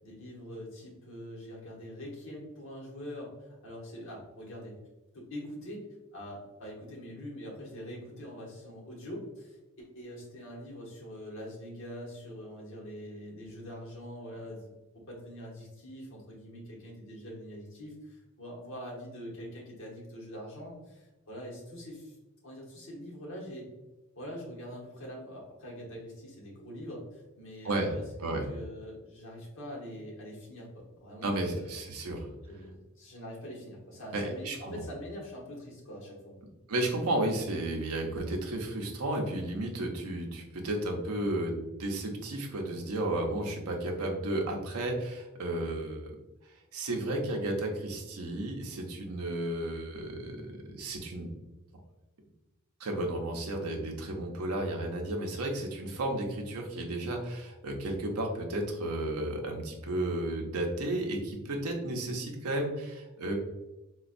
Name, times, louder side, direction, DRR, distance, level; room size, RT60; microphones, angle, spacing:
voice 1, 0.0-4.8 5.1-5.9 6.1-14.7 15.1-22.2 22.4-23.7 24.1-31.7 32.5-36.3, equal, 60° left, -2 dB, 1.0 m, -44 dB
voice 2, 31.2-32.3 34.1-34.8 36.7-46.1 46.7-50.4 50.7-51.3 52.8-63.3, right 1 dB, 85° right, 2 dB, 0.6 m, -33 dB
4.1 x 2.2 x 2.5 m, 1.1 s
head